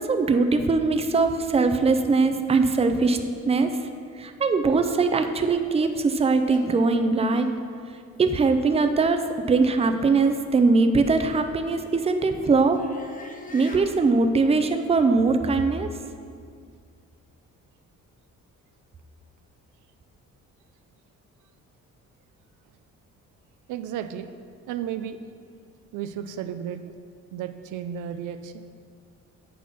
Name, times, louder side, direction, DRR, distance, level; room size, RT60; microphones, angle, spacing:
voice 1, 0.0-3.2 3.5-3.7 4.2-7.5 8.2-9.2 9.5-12.8 13.5-15.9, right 4 dB, 20° right, 7 dB, 0.5 m, -21 dB
sound 1, 4.2-4.3 4.9-5.1 5.8-6.0 6.5-6.7 7.3-7.5 8.1-8.3 9.2-9.5 10.2-10.4 11.1-11.2 11.7-13.9, left 3 dB, 25° left, 0.8 m, -45 dB
voice 2, 23.7-24.3 24.7-25.2 25.9-26.8 27.3-28.6, right 9 dB, 85° right, 9 dB, 0.5 m, -33 dB
8.3 x 4.2 x 5.6 m, 2.2 s
cardioid pair, 90°, 30 cm